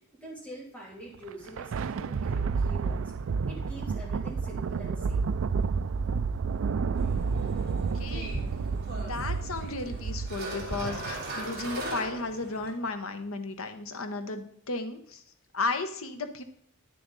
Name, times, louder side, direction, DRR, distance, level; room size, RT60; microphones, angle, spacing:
voice 1, 0.0-3.0 3.5-5.2, right 1 dB, 5° left, -5 dB, 2.9 m, -45 dB
Thunder, 1.1-11.9, right 5 dB, 65° right, 0.4 m, -31 dB
sound 1, 6.9-12.7, right 1 dB, 50° right, 2.7 m, -39 dB
voice 2, 7.7-8.5 9.0-15.2 15.5-16.4, left 3 dB, 80° left, 8 dB, 1.0 m, -34 dB
9.5 x 6.7 x 4.0 m, 0.69 s
head